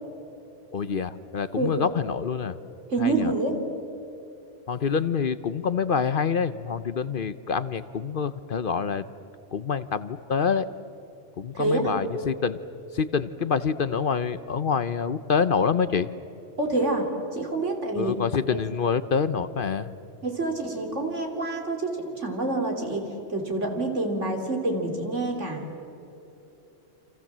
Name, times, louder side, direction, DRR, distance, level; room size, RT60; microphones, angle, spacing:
voice 1, 0.7-2.6 3.0-3.3 4.7-9.1 9.5-10.7 11.4-12.6 12.9-16.1 17.9-19.9, left 6 dB, 50° left, 14 dB, 0.9 m, -26 dB
voice 2, 2.9-3.6 11.5-11.8 16.6-18.2 18.5-18.6 20.2-25.7, right 2 dB, 80° right, 3 dB, 3.6 m, -27 dB
29.0 x 26.5 x 7.4 m, 2.9 s
omnidirectional pair, 1.2 m